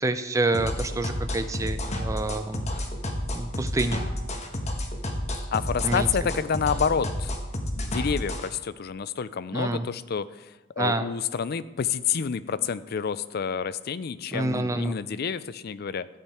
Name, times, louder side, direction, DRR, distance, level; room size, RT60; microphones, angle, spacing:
voice 1, 0.0-2.7 3.3-4.0 5.8-6.3 9.5-9.9 10.8-11.1 14.3-15.0, right 2 dB, 15° right, 9 dB, 0.5 m, -28 dB
sound 1, 0.5-8.5, left 1 dB, 35° left, 1.3 m, -30 dB
voice 2, 5.5-7.3 7.8-10.5 10.8-16.1, left 6 dB, 50° left, 15 dB, 0.4 m, -28 dB
13.5 x 8.1 x 4.3 m, 1.1 s
head